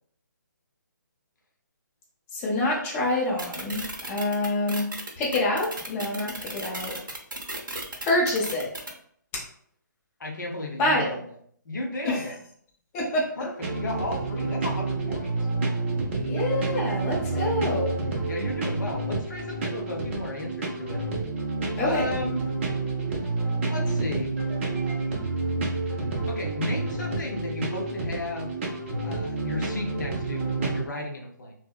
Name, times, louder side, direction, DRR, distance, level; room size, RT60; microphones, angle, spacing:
voice 1, 2.3-4.9 5.2-6.9 8.0-8.7 10.8-11.1 12.0-12.2 12.9-13.2 16.2-17.9 21.8-22.0, left 2 dB, 20° left, -5 dB, 0.5 m, -26 dB
sound 1, 3.4-8.9, right 2 dB, 85° right, 0.6 m, -35 dB
voice 2, 10.2-11.2 11.6-12.3 13.4-15.3 17.2-17.7 18.2-21.0 21.8-22.4 23.7-24.3 25.8-28.5 29.0-31.5, left 1 dB, 65° left, 1 dB, 0.6 m, -34 dB
sound 2, 13.6-30.8, right 3 dB, 40° right, 0.5 m, -29 dB
2.7 x 2.0 x 2.3 m, 0.64 s
figure-of-eight pair, 145°, 11 cm